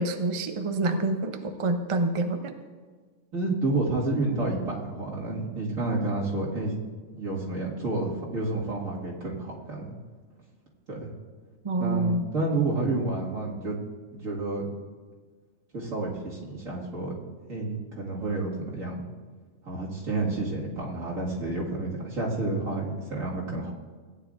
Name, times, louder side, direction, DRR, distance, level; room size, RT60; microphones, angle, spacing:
voice 1, 0.0-2.5 11.6-12.3, right 2 dB, 40° right, 6 dB, 0.5 m, -27 dB
voice 2, 3.3-6.8 7.1-9.9 10.9-11.1 11.8-13.8 14.1-14.7 15.7-17.1 17.5-19.1 19.6-23.7, right 2 dB, 70° right, -4 dB, 2.4 m, -30 dB
16.5 x 9.8 x 2.5 m, 1.5 s
omnidirectional pair, 1.4 m